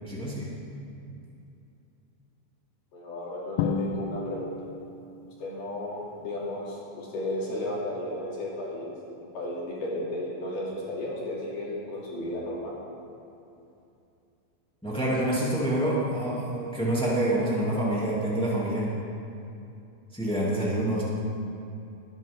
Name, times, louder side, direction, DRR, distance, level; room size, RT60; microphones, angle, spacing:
voice 1, 0.0-0.5 14.8-18.9 20.1-21.0, right 1 dB, 5° left, -7 dB, 0.4 m, -27 dB
voice 2, 2.9-4.5 5.4-12.8, left 1 dB, 60° left, -6 dB, 4.4 m, -34 dB
Drum, 3.6-5.3, left 5 dB, 85° left, 3.0 m, -31 dB
21.5 x 11.0 x 3.6 m, 2.7 s
omnidirectional pair, 5.2 m